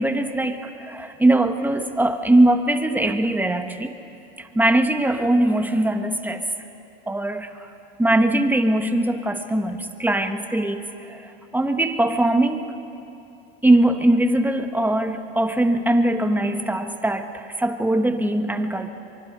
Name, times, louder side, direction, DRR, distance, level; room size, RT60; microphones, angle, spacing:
voice 1, 0.0-3.9 4.4-6.5 7.1-7.5 8.0-12.7 13.6-18.9, right 1 dB, 5° right, 6 dB, 1.5 m, -21 dB
24.5 x 23.5 x 5.5 m, 2.7 s
supercardioid pair, 100°, 32 cm